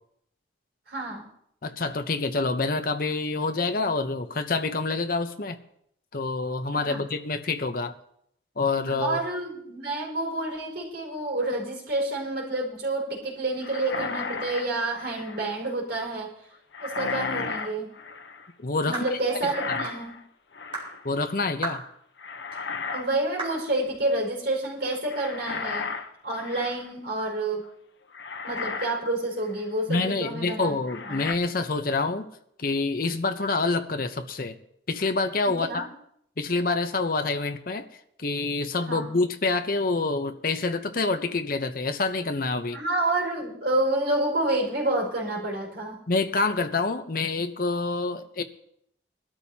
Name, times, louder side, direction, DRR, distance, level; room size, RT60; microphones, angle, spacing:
voice 1, 0.9-1.3 6.7-7.0 8.8-16.3 16.8-17.9 18.8-20.2 22.9-25.9 26.2-27.6 28.4-30.8 31.0-31.2 35.4-35.9 38.9-39.1 42.7-46.0, right 2 dB, 65° right, 5.0 m, -29 dB
voice 2, 1.6-5.6 6.1-8.0 8.6-9.2 18.6-19.8 21.0-21.8 29.9-32.3 32.6-34.6 34.9-35.9 36.4-37.9 38.2-42.8 46.1-48.4, left 3 dB, 50° left, 0.8 m, -27 dB
sound 1, 13.6-15.6 16.7-18.5 19.4-20.2 20.5-21.0 22.2-23.1 23.4-23.7 25.1-26.9 27.6-27.7 28.1-29.0 29.5-29.6 30.9-31.3, left 4 dB, 75° left, 0.9 m, -34 dB
sound 2, 18.9-19.2 19.8-20.0 20.7-20.9 21.6-21.9 22.5-22.6 23.4-23.6, right 2 dB, 30° right, 4.3 m, -33 dB
21.5 x 13.0 x 2.8 m
head